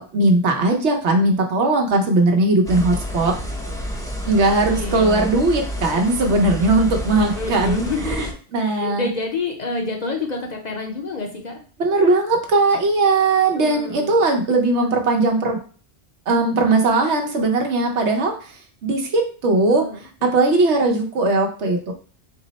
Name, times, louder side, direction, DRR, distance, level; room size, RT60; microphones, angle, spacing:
voice 1, 0.0-3.3 4.2-9.1 11.8-15.6 16.3-18.6 18.8-19.8 20.2-21.9, right 2 dB, 85° right, 3 dB, 1.1 m, -19 dB
sound 1, 2.6-8.3, left 1 dB, 5° left, 0.3 m, -29 dB
voice 2, 4.6-5.3 7.4-8.2 8.6-11.6 13.5-14.2 19.7-20.0, left 3 dB, 45° left, 2 dB, 0.6 m, -28 dB
4.4 x 2.0 x 3.9 m, 0.40 s
omnidirectional pair, 1.1 m